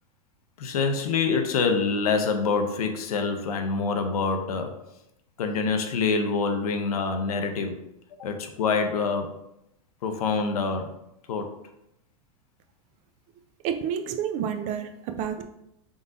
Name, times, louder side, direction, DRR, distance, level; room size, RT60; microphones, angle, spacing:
voice 1, 0.6-4.8 5.4-7.8 8.2-9.3 10.0-11.0 11.3-11.5, left 4 dB, 85° left, 6 dB, 0.6 m, -26 dB
voice 2, 13.6-15.4, right 8 dB, 40° right, 7 dB, 0.5 m, -29 dB
3.8 x 3.8 x 2.6 m, 0.83 s
hypercardioid pair, 120°, 19 cm